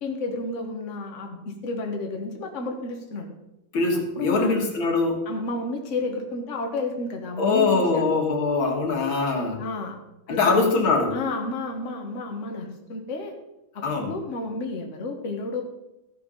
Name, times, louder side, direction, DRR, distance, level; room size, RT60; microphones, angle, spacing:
voice 1, 0.0-3.3 4.2-4.6 5.3-8.1 9.6-9.9 10.3-10.5 11.1-13.3 13.7-15.6, left 3 dB, 40° left, 2 dB, 1.5 m, -31 dB
voice 2, 3.7-5.3 7.4-9.6 10.3-11.2 13.8-14.2, left 3 dB, 75° left, 1 dB, 2.4 m, -23 dB
14.0 x 5.7 x 5.5 m, 0.92 s
omnidirectional pair, 2.2 m